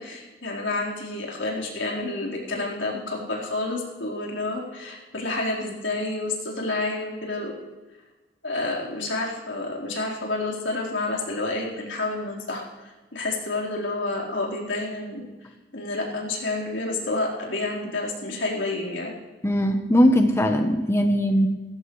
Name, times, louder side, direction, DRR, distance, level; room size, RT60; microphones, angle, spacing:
voice 1, 0.0-7.5 8.4-12.6 13.1-15.2 15.7-19.1, left 2 dB, 85° left, -3 dB, 4.3 m, -29 dB
voice 2, 19.4-21.5, equal, 15° left, 5 dB, 0.9 m, -20 dB
18.5 x 15.5 x 3.2 m, 1.2 s
head